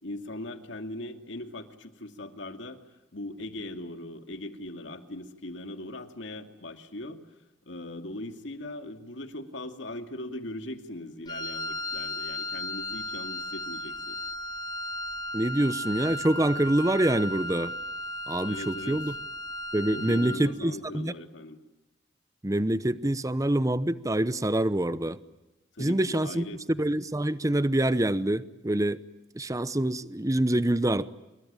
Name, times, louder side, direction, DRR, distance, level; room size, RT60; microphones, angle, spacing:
voice 1, 0.0-2.8 3.1-7.2 7.6-14.2 18.4-19.0 19.9-21.6 25.7-26.6, left 1 dB, 65° left, 7 dB, 2.5 m, -40 dB
Wind instrument woodwind instrument, 11.3-20.5, left 1 dB, 20° left, 1.8 m, -35 dB
voice 2, 15.3-17.7 18.3-19.1 19.7-21.1 22.4-25.2 25.8-26.5 26.8-29.0 29.3-31.1, right 1 dB, 15° right, 15 dB, 0.9 m, -26 dB
27.5 x 23.0 x 8.9 m, 1.0 s
head